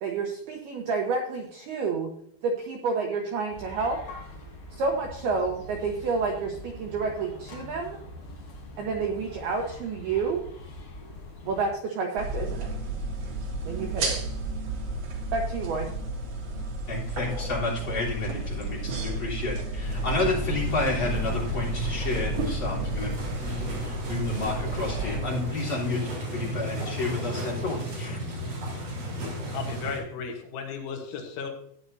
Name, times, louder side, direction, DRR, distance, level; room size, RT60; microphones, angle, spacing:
voice 1, 0.0-2.1 2.4-4.0 4.7-8.0 8.8-10.4 11.5-12.7 13.6-14.1 15.3-15.9, right 4 dB, 80° right, 1 dB, 2.3 m, -29 dB
sound 1, 3.5-11.7, left 2 dB, 45° left, 4.0 m, -44 dB
sound 2, 12.2-25.2, right 2 dB, 60° right, 1.7 m, -32 dB
voice 2, 16.9-28.2, left 2 dB, 25° left, -4 dB, 3.4 m, -31 dB
sound 3, 19.8-30.0, equal, 45° right, 5.0 m, -34 dB
voice 3, 29.5-31.5, left 5 dB, 75° left, 3 dB, 3.5 m, -35 dB
14.5 x 9.7 x 2.7 m, 0.67 s
omnidirectional pair, 5.7 m